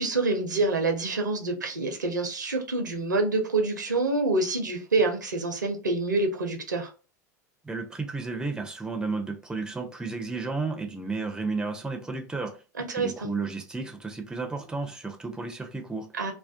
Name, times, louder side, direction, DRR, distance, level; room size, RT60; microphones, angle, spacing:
voice 1, 0.0-6.9 12.8-13.3 16.2-16.3, right 3 dB, 85° right, 0.5 m, -27 dB
voice 2, 7.6-12.6 12.9-16.1, right 3 dB, 5° right, 0.4 m, -32 dB
2.4 x 2.2 x 2.5 m
figure-of-eight pair, 80°, 10 cm